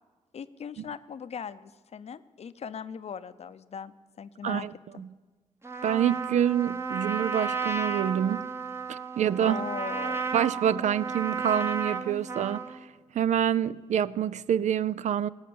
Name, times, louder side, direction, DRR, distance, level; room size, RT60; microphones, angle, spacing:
voice 1, 0.3-4.7 4.9-5.0 9.4-10.3, left 7 dB, 60° left, 0.6 m, -39 dB
Trumpet, 5.6-12.8, right 5 dB, 20° right, 0.9 m, -33 dB
voice 2, 5.8-8.5 8.9-9.6 10.3-12.8 13.1-15.3, right 9 dB, 75° right, 0.4 m, -27 dB
18.0 x 6.6 x 8.6 m
cardioid pair, 85°, 12 cm